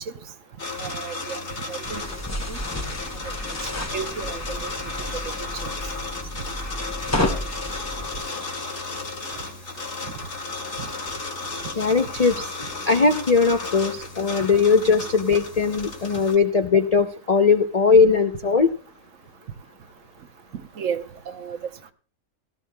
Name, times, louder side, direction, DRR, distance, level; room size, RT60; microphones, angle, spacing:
sound 1, 0.6-16.3, left 3 dB, 50° left, 2.4 m, -34 dB
voice 1, 0.8-1.4 1.7-2.0 2.5-2.6 3.9-4.7 5.1-5.2 5.6-5.7 10.8-10.9 20.8-21.6, right 7 dB, 65° right, 1.1 m, -32 dB
sound 2, 1.8-8.2, left 1 dB, 15° left, 0.6 m, -31 dB
voice 2, 11.8-12.5 12.9-18.7, left 5 dB, 75° left, 0.3 m, -19 dB
17.5 x 13.5 x 2.2 m
omnidirectional pair, 1.6 m